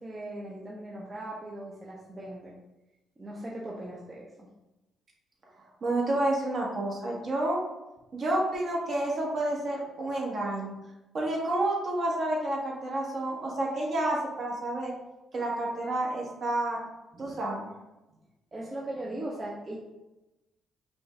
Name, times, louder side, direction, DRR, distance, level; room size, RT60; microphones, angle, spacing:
voice 1, 0.0-2.5 3.2-4.5 17.1-17.4 18.5-19.8, right 1 dB, 25° right, -4 dB, 0.7 m, -39 dB
voice 2, 5.8-7.6 8.1-10.7 11.1-14.9 15.3-16.8 17.2-17.7, right 1 dB, 50° right, -3 dB, 1.3 m, -29 dB
5.2 x 2.4 x 3.2 m, 0.99 s
cardioid pair, 90°, 0 cm